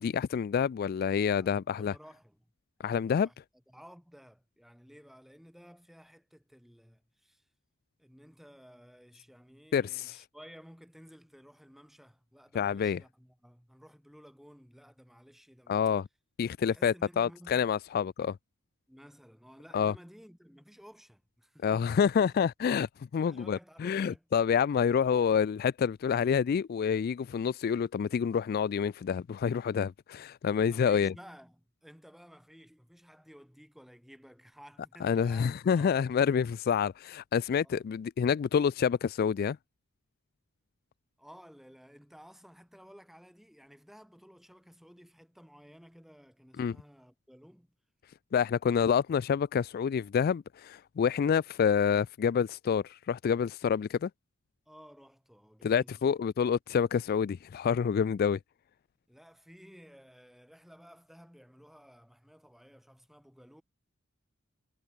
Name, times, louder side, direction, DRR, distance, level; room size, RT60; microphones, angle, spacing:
voice 1, 0.0-1.9 2.8-3.3 9.7-10.2 12.5-13.0 15.7-16.1 16.4-18.4 19.7-19.9 21.6-31.1 35.0-39.6 46.6-46.8 48.3-54.1 55.6-58.4, left 7 dB, 50° left, 0.3 m, -28 dB
voice 2, 1.4-2.5 2.8-3.4 3.7-7.4 8.0-15.8 16.7-17.8 18.9-22.4 23.2-24.3 30.6-36.0 37.6-37.8 41.2-47.7 54.7-56.2 59.1-63.6, equal, ahead, 5.9 m, -55 dB
head